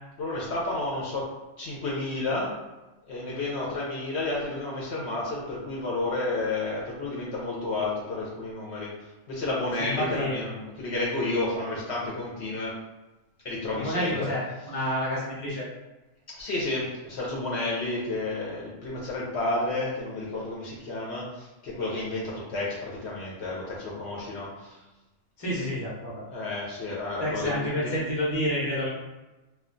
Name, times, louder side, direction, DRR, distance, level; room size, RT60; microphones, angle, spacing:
voice 1, 0.2-1.3 1.6-2.5 3.1-8.9 9.3-12.8 13.4-14.3 16.3-24.8 26.3-28.0, left 2 dB, 65° left, -5 dB, 0.9 m, -31 dB
voice 2, 9.8-10.4 13.7-15.7 25.4-26.2 27.2-28.9, equal, 25° left, -6 dB, 0.8 m, -29 dB
2.4 x 2.2 x 3.7 m, 1.1 s
omnidirectional pair, 1.3 m